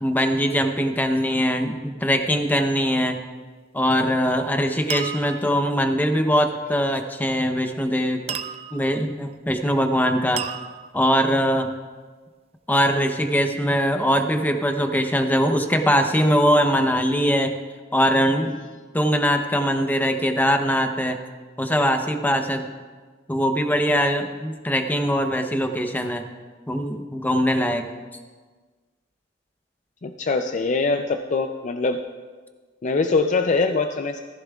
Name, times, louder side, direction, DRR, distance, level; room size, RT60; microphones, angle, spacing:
voice 1, 0.0-3.2 3.7-8.2 8.7-10.4 10.9-11.7 12.7-17.5 17.9-18.6 18.9-21.2 21.6-22.7 23.3-26.3 26.7-27.9, equal, 10° left, 6 dB, 0.7 m, -21 dB
sound 1, 3.8-4.3 4.9-5.6 8.3-9.0 10.4-11.2, right 8 dB, 30° right, 0.4 m, -33 dB
voice 2, 30.0-32.0 32.8-34.2, left 3 dB, 40° left, 6 dB, 0.4 m, -23 dB
14.5 x 14.5 x 2.4 m, 1.4 s
head